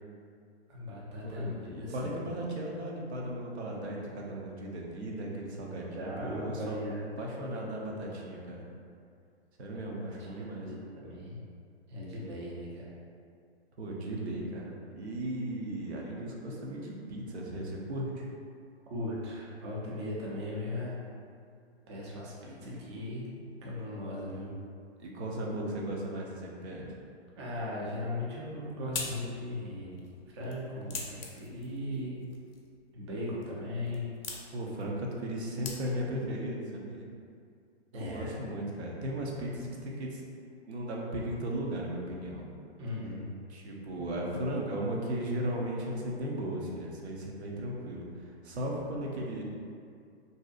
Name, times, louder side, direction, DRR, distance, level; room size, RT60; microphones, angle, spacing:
voice 1, 0.7-2.1 6.0-7.1 9.7-11.4 11.9-12.8 18.9-21.0 21.9-23.2 23.6-24.5 27.4-30.0 30.3-32.2 32.9-34.1 37.9-38.3 42.8-43.3, left 1 dB, 30° right, -5 dB, 0.4 m, -38 dB
voice 2, 1.2-6.8 7.2-8.7 9.6-10.7 13.8-18.3 25.0-26.9 34.5-37.1 37.9-40.2 40.7-42.4 43.5-49.4, right 1 dB, 80° right, -2 dB, 0.6 m, -36 dB
sound 1, 28.3-36.2, left 4 dB, 60° left, 0.5 m, -45 dB
2.6 x 2.0 x 2.3 m, 2.3 s
hypercardioid pair, 130°, 33 cm